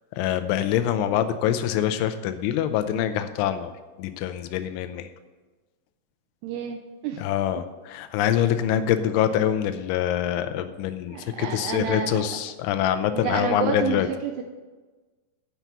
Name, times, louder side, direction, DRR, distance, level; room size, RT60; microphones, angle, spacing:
voice 1, 0.1-3.7 4.0-5.1 7.2-14.1, left 10 dB, 90° left, 9 dB, 3.1 m, -25 dB
voice 2, 6.4-7.2 11.1-12.4 13.1-14.4, right 7 dB, 80° right, 4 dB, 2.4 m, -30 dB
9.4 x 6.0 x 7.0 m, 1.3 s
omnidirectional pair, 5.4 m